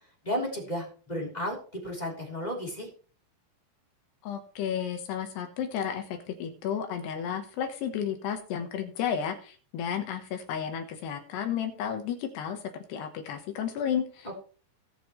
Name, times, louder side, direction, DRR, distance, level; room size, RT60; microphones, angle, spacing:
voice 1, 0.2-1.6 1.8-2.9, equal, 10° left, -1 dB, 2.5 m, -33 dB
voice 2, 4.2-14.4, left 8 dB, 70° left, 5 dB, 3.0 m, -32 dB
19.0 x 6.7 x 3.2 m, 0.39 s
omnidirectional pair, 5.7 m